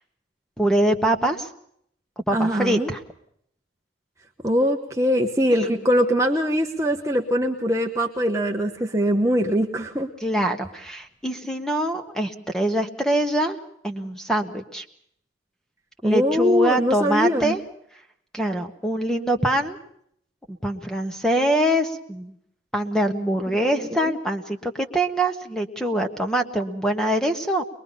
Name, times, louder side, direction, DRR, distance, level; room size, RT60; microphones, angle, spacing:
voice 1, 0.6-1.5 2.3-3.0 5.6-5.8 10.2-13.6 13.8-14.8 16.0-17.6 18.3-19.8 20.5-22.3 22.7-27.6, right 1 dB, 5° left, 6 dB, 1.5 m, -24 dB
voice 2, 2.3-2.9 4.4-10.1 16.0-17.6 23.5-23.6 24.0-24.2, equal, 15° right, 2 dB, 1.1 m, -22 dB
22.5 x 22.0 x 5.6 m, 0.68 s
head